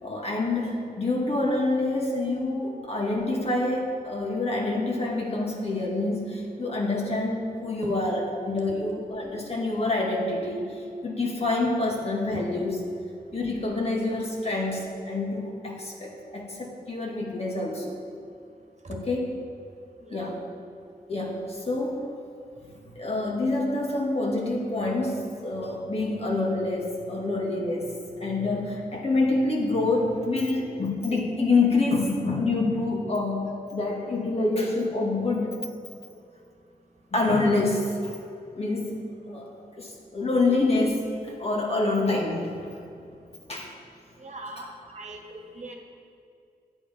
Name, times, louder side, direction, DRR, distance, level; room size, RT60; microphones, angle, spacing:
voice 1, 0.0-12.8 13.3-18.0 18.9-19.3 20.1-20.4 21.1-22.0 23.0-27.9 28.2-35.6 37.1-38.2 38.6-39.0 39.3-39.5 39.8-42.7 43.5-43.7, left 2 dB, 40° left, -2 dB, 2.1 m, -27 dB
voice 2, 20.0-20.4 44.2-45.7, right 2 dB, 45° right, 1 dB, 1.5 m, -41 dB
10.0 x 8.1 x 5.2 m, 2.5 s
wide cardioid pair, 85°, 16 cm